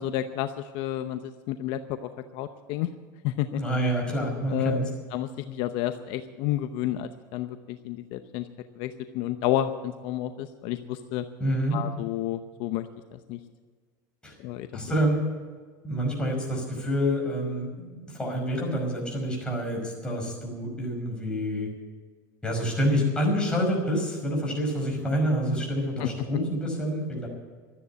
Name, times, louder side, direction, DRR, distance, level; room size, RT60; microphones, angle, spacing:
voice 1, 0.0-2.9 3.2-3.6 4.5-4.8 5.1-8.5 8.8-11.3 11.7-12.9 13.1-13.4 14.4-14.7 26.0-26.1, left 12 dB, 60° left, 9 dB, 0.8 m, -30 dB
voice 2, 3.5-4.9 11.4-11.8 14.2-14.3 14.7-15.2 15.8-21.7 22.4-27.3, equal, 10° left, -1 dB, 5.3 m, -27 dB
13.0 x 9.9 x 9.7 m, 1.5 s
supercardioid pair, 135°, 10 cm